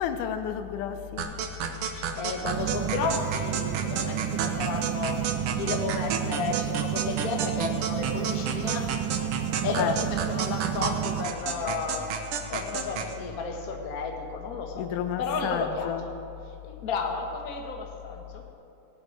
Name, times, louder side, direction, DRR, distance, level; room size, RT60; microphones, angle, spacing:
voice 1, 0.0-1.4 9.8-10.0 14.8-16.1, left 9 dB, 85° left, 9 dB, 2.3 m, -31 dB
sound 1, 1.2-13.1, right 6 dB, 70° right, 1.4 m, -32 dB
voice 2, 1.9-8.9 9.6-12.2 12.5-14.9 15.2-15.9 16.6-18.4, left 4 dB, 45° left, 2 dB, 1.2 m, -33 dB
sound 2, 2.4-11.3, right 11 dB, 90° right, 2.2 m, -31 dB
18.5 x 6.8 x 8.6 m, 3.0 s
omnidirectional pair, 3.6 m